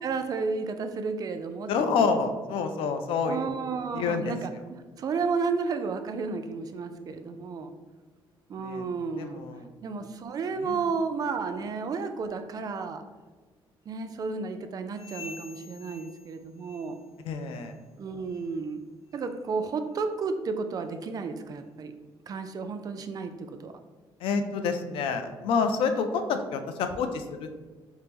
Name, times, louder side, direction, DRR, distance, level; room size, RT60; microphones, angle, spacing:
voice 1, 0.0-1.7 3.3-7.7 8.5-9.4 9.8-13.0 13.9-17.0 18.0-18.8 19.1-21.9 22.3-23.7, right 4 dB, 45° right, 7 dB, 0.3 m, -32 dB
voice 2, 1.7-3.5 3.9-4.3 8.6-8.9 9.2-9.7 10.6-10.8 17.2-17.7 24.2-27.5, left 5 dB, 85° left, 7 dB, 0.4 m, -28 dB
sound 1, 14.9-17.1 17.4-17.8 18.2-18.5 19.1-19.3 19.9-20.0 20.8-20.9, left 4 dB, 35° left, 0.9 m, -48 dB
4.4 x 2.0 x 3.3 m, 1.3 s
cardioid pair, 120°, 9 cm